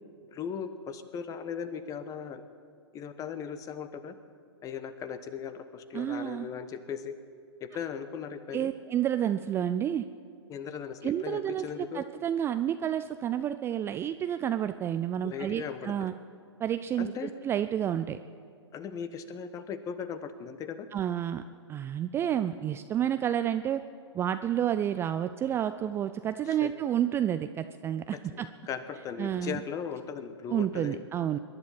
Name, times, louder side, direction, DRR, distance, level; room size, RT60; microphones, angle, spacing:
voice 1, 0.3-2.4 2.9-4.2 4.6-7.1 7.6-8.7 10.5-12.0 15.2-16.1 17.0-17.3 18.7-20.9 26.5-26.7 28.7-31.0, left 7 dB, 25° left, 12 dB, 1.0 m, -38 dB
voice 2, 5.9-6.5 8.5-10.1 11.0-16.1 16.6-18.2 20.9-21.4 21.7-23.8 24.1-28.5 29.2-29.6 30.5-31.4, right 10 dB, 15° right, 10 dB, 0.3 m, -30 dB
22.0 x 11.0 x 5.8 m, 2.3 s
hypercardioid pair, 115°, 15 cm